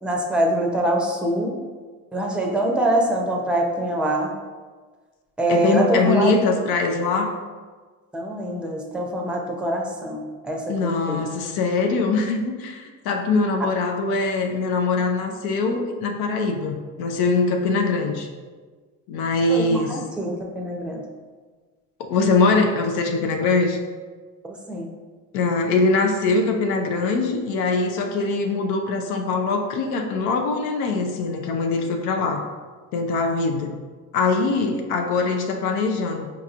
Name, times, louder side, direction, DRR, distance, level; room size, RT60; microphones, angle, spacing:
voice 1, 0.0-1.6 2.1-4.3 5.4-6.3 8.1-11.2 13.6-13.7 19.5-21.0 24.4-24.9, right 1 dB, 5° right, 0 dB, 0.6 m, -24 dB
voice 2, 5.5-7.3 10.7-18.3 19.1-20.0 22.0-23.8 25.3-32.5 32.9-33.7 34.1-36.3, left 3 dB, 80° left, 4 dB, 0.5 m, -22 dB
4.6 x 2.9 x 2.5 m, 1.4 s
supercardioid pair, 95°, 37 cm